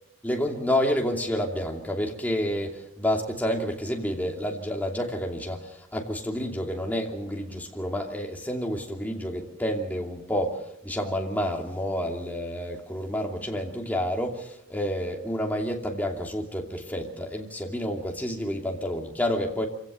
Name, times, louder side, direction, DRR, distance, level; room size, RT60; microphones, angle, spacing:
voice 1, 0.2-19.7, equal, 10° left, 1 dB, 2.8 m, -29 dB
26.0 x 17.0 x 6.8 m, 0.75 s
head